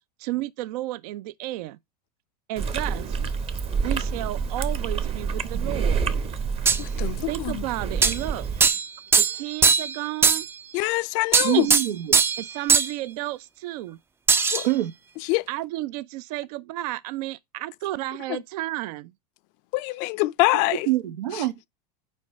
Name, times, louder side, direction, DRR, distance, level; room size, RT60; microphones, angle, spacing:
voice 1, 0.2-1.8 2.5-3.2 3.8-6.0 7.3-8.5 9.2-10.5 11.5-11.8 12.4-14.0 15.5-19.1, right 16 dB, 65° right, 0.5 m, -32 dB
Chewing mastication, 2.6-8.7, right 5 dB, 30° right, 0.8 m, -28 dB
sound 1, 6.7-6.8 8.0-8.2 8.6-8.9 9.1-10.0 10.2-10.5 11.3-12.4 12.7-12.9 14.3-14.7, right 5 dB, 10° right, 0.4 m, -19 dB
voice 2, 6.8-7.3 10.7-11.7 14.5-14.6 15.3-15.4 19.7-20.9, left 21 dB, 50° left, 0.4 m, -24 dB
voice 3, 11.4-12.2 14.6-14.9 20.9-21.5, right 16 dB, 90° right, 0.8 m, -25 dB
5.3 x 4.6 x 5.2 m
supercardioid pair, 115°, 21 cm